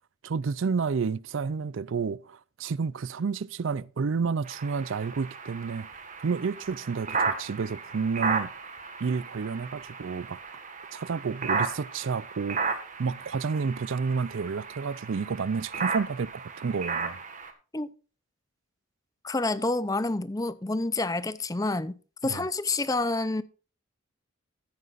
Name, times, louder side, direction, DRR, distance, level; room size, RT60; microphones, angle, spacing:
voice 1, 0.2-5.9 6.2-8.5 9.0-10.4 10.9-12.6 13.0-17.2 22.3-22.5, right 5 dB, 70° right, 0.5 m, -30 dB
sound 1, 4.4-17.5, right 5 dB, 40° right, 1.6 m, -34 dB
voice 2, 19.2-21.9 22.2-23.4, left 2 dB, 15° left, 0.6 m, -28 dB
14.5 x 9.8 x 2.5 m
head